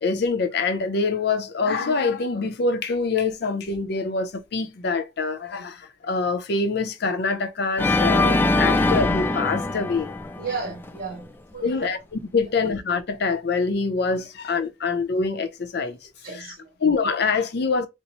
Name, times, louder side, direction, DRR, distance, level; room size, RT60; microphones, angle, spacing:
voice 1, 0.0-10.1 11.6-16.0 16.4-16.5 16.8-17.9, left 4 dB, 60° left, 0.5 m, -25 dB
Organ, 7.8-10.9, left 2 dB, 10° left, 0.3 m, -22 dB
voice 2, 10.4-12.0 16.2-16.7, right 5 dB, 55° right, 1.8 m, -34 dB
4.1 x 2.0 x 2.9 m
head